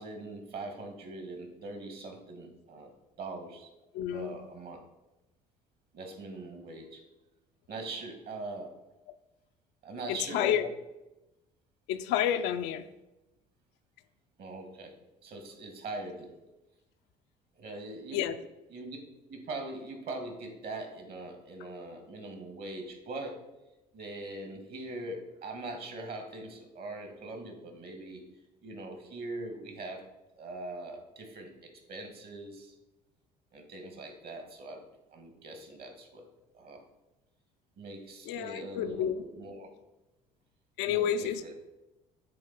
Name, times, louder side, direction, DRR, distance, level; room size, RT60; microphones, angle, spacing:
voice 1, 0.0-2.9 3.2-3.7 4.1-4.8 5.9-7.0 7.7-8.7 9.8-10.6 14.4-14.9 15.2-16.3 17.5-18.2 18.7-19.0 19.3-23.4 23.9-28.2 28.6-30.1 30.3-32.7 33.5-34.8 35.1-36.2 36.5-36.8 37.8-39.7 40.9-41.5, right 2 dB, 55° right, 5 dB, 1.6 m, -42 dB
voice 2, 3.9-4.4 10.1-10.7 11.9-12.9 18.1-18.4 38.3-39.2 40.8-41.5, left 10 dB, 65° left, 9 dB, 0.5 m, -30 dB
7.7 x 3.5 x 4.0 m, 0.98 s
hypercardioid pair, 60°, 20 cm